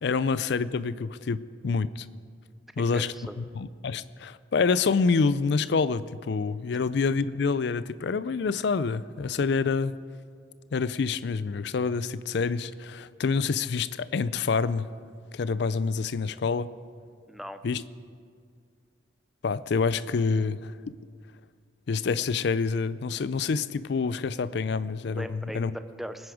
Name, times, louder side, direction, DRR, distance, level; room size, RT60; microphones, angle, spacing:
voice 1, 0.0-2.1 2.8-10.0 10.7-14.9 15.3-16.7 17.6-17.8 19.4-20.9 21.9-25.7, left 4 dB, 60° left, 16 dB, 0.4 m, -27 dB
voice 2, 2.9-3.4 17.3-17.6 25.2-26.3, equal, ahead, 9 dB, 0.4 m, -39 dB
21.5 x 9.6 x 4.9 m, 2.1 s
head